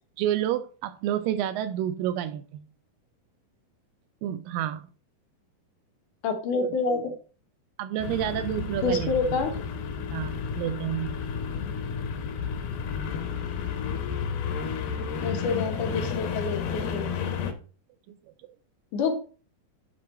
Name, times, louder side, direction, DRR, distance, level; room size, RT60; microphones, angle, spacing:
voice 1, 0.2-2.6 4.2-4.8 7.8-9.1 10.1-11.1 18.1-18.2, right 11 dB, 80° right, 2.1 m, -29 dB
voice 2, 6.2-7.1 8.8-9.6 15.2-17.1 18.9-19.2, left 4 dB, 65° left, 2.4 m, -27 dB
sound 1, 8.0-17.5, left 6 dB, 85° left, 2.8 m, -31 dB
9.8 x 3.9 x 4.3 m
omnidirectional pair, 4.2 m